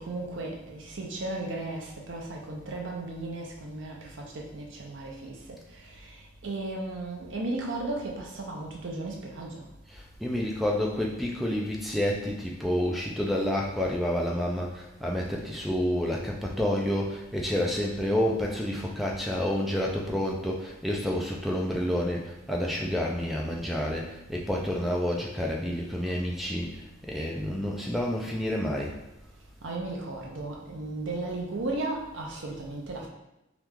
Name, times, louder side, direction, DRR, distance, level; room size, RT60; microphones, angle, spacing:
voice 1, 0.0-5.4 5.7-9.6 29.6-33.1, right 2 dB, 65° right, 0 dB, 0.6 m, -35 dB
voice 2, 9.9-29.0, left 1 dB, ahead, -2 dB, 0.3 m, -29 dB
3.0 x 2.4 x 3.5 m, 0.92 s
head